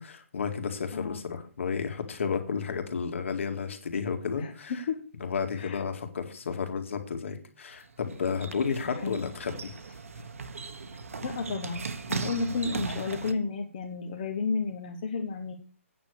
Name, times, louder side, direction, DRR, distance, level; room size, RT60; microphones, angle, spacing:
voice 1, 0.0-4.8 5.2-9.7, left 6 dB, 60° left, 6 dB, 2.2 m, -32 dB
sound 1, 7.7-13.3, right 4 dB, 70° right, 1.4 m, -38 dB
voice 2, 11.2-15.5, left 4 dB, 35° left, 2 dB, 1.1 m, -32 dB
9.1 x 7.0 x 6.6 m, 0.40 s
hypercardioid pair, 170°, 8 cm